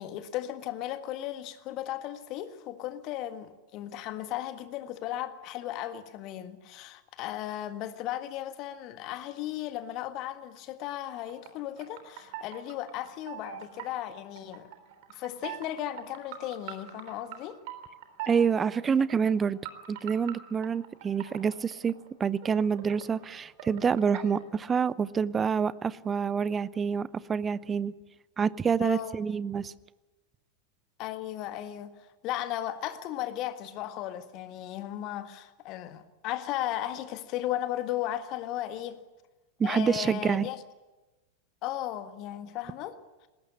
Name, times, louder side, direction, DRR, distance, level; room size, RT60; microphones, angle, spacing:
voice 1, 0.0-14.7 15.1-17.6 28.8-29.2 31.0-39.0 39.6-40.6 41.6-43.3, left 13 dB, 40° left, 1.6 m, -36 dB
sound 1, 11.3-11.5 11.8-17.4 17.7-23.3 23.6-24.6, right 11 dB, 50° right, 3.6 m, -43 dB
voice 2, 18.3-19.6 19.9-21.9 22.2-27.9 28.4-29.7 39.6-40.5, right 6 dB, 20° right, 0.7 m, -27 dB
20.0 x 17.5 x 8.6 m
figure-of-eight pair, 90°, 0 cm